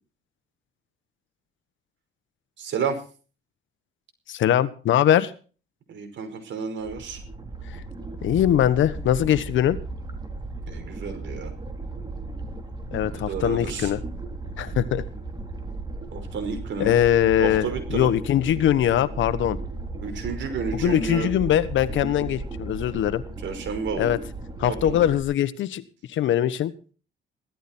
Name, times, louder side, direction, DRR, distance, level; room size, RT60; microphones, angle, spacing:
voice 1, 2.6-3.0 5.9-7.2 10.7-11.5 13.1-13.9 16.1-17.0 17.4-18.1 20.0-21.3 23.4-24.1 24.6-25.0, right 5 dB, 70° right, 6 dB, 5.3 m, -31 dB
voice 2, 4.3-5.3 7.7-7.8 8.2-9.8 12.9-14.0 14.6-15.0 16.8-19.6 20.7-23.2 23.9-24.2 24.6-25.8 26.1-26.7, left 11 dB, 75° left, 14 dB, 1.4 m, -22 dB
sound 1, 6.8-25.2, right 2 dB, 20° right, 3.7 m, -35 dB
16.5 x 13.5 x 4.4 m, 0.38 s
cardioid pair, 90°, 20 cm